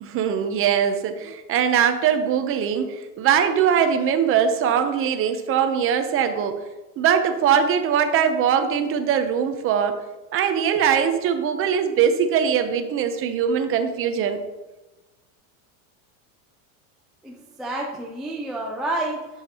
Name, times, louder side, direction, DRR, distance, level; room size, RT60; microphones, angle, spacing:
voice 1, 0.0-6.6 7.0-10.0 10.3-14.4, right 8 dB, 30° right, 7 dB, 0.7 m, -21 dB
voice 2, 17.2-19.3, right 2 dB, ahead, -3 dB, 0.4 m, -29 dB
10.5 x 7.4 x 2.9 m, 1.1 s
supercardioid pair, 155°, 43 cm